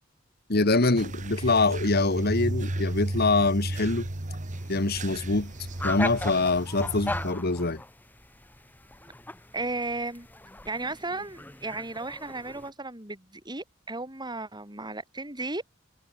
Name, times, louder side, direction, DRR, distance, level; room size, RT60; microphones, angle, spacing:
voice 1, 0.5-4.1 4.7-5.5 5.8-7.8, left 3 dB, 55° left, 1.6 m, -24 dB
sound 1, 1.0-7.3, right 1 dB, 40° right, 1.5 m, -33 dB
sound 2, 4.5-12.7, left 1 dB, 10° left, 1.7 m, -39 dB
voice 2, 9.5-10.3 10.6-15.6, right 2 dB, 20° right, 7.1 m, -34 dB
head